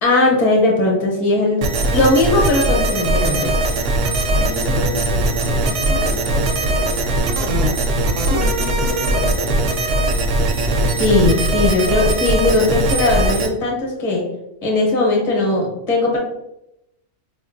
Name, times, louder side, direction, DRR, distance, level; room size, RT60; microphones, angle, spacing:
voice 1, 0.0-3.5 11.0-14.2 14.6-16.2, left 2 dB, 35° left, -1 dB, 0.9 m, -18 dB
sound 1, 1.6-13.5, right 1 dB, 80° right, 0.9 m, -19 dB
voice 2, 4.3-7.8 8.4-9.6, left 3 dB, 85° left, 3 dB, 0.9 m, -31 dB
4.5 x 2.5 x 2.5 m, 0.85 s
omnidirectional pair, 1.3 m